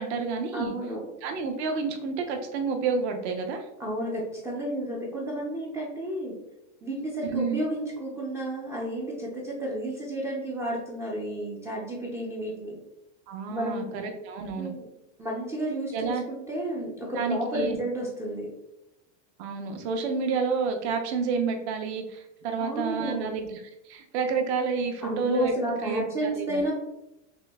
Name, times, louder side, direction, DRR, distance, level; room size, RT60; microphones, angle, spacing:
voice 1, 0.0-0.7 1.2-3.7 7.3-7.6 13.3-14.7 15.9-16.2 17.2-17.8 19.4-23.6 23.8-25.5 25.8-26.6, right 5 dB, 60° right, 4 dB, 0.8 m, -29 dB
voice 2, 0.5-1.1 3.8-6.3 6.8-12.8 13.5-13.9 14.5-14.9 15.2-18.5 22.6-23.3 25.0-26.8, right 1 dB, 10° right, -5 dB, 0.3 m, -31 dB
5.9 x 2.0 x 2.2 m, 0.91 s
supercardioid pair, 135°, 37 cm